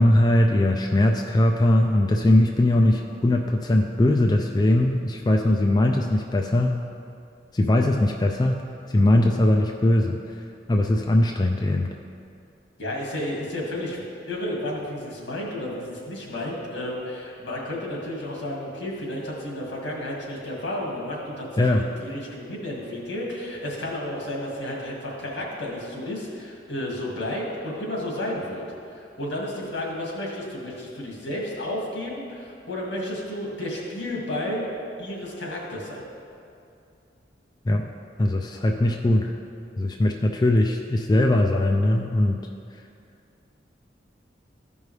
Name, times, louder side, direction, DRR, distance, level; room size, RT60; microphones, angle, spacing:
voice 1, 0.0-6.8 7.5-8.6 8.9-10.2 10.7-11.9 21.6-21.9 37.7-37.9 38.2-39.3 39.8-42.4, left 1 dB, 20° left, 2 dB, 0.3 m, -20 dB
voice 2, 12.8-28.6 28.9-34.6 35.0-36.0, left 1 dB, 80° left, -3 dB, 2.0 m, -32 dB
13.5 x 5.4 x 3.2 m, 2.5 s
head